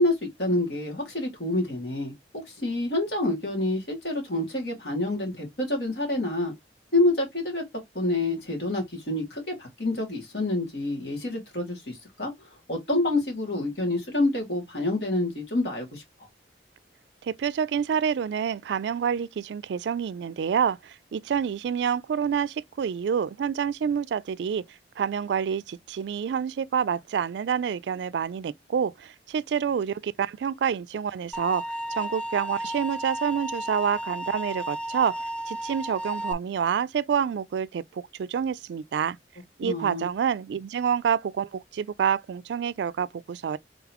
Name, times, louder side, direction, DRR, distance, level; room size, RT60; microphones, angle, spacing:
voice 1, 0.0-6.5 6.9-7.6 7.9-12.3 12.7-16.0 39.6-40.1, left 2 dB, 65° left, 2.2 m, -27 dB
voice 2, 17.2-24.6 25.0-31.6 31.9-39.2 39.6-43.6, right 7 dB, 75° right, 0.3 m, -28 dB
sound 1, 31.3-36.3, right 1 dB, 5° left, 0.4 m, -33 dB
3.9 x 3.7 x 2.9 m
head